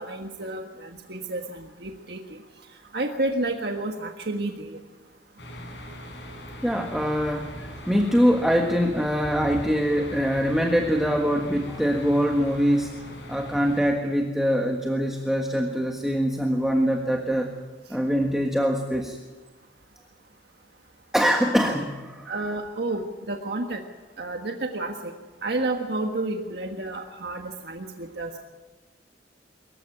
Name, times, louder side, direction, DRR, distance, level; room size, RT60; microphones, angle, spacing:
voice 1, 0.0-2.4 2.9-4.8 22.3-23.8 24.2-25.1 25.4-28.3, right 2 dB, 65° right, 3 dB, 1.5 m, -30 dB
sound 1, 5.4-13.9, equal, 75° left, 6.7 m, -40 dB
voice 2, 6.6-12.9 13.3-17.5 17.9-19.2 21.1-22.3, equal, ahead, 2 dB, 1.5 m, -23 dB
24.0 x 15.0 x 9.8 m, 1.3 s
head